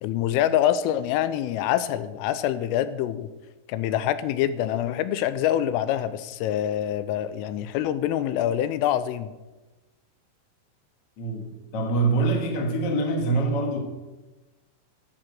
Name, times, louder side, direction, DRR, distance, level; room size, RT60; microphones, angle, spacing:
voice 1, 0.0-3.3 3.7-9.3, left 11 dB, 85° left, 13 dB, 3.2 m, -25 dB
voice 2, 11.2-11.5 11.7-13.8, right 3 dB, 65° left, 2 dB, 1.4 m, -24 dB
11.5 x 6.7 x 7.8 m, 1.1 s
omnidirectional pair, 5.8 m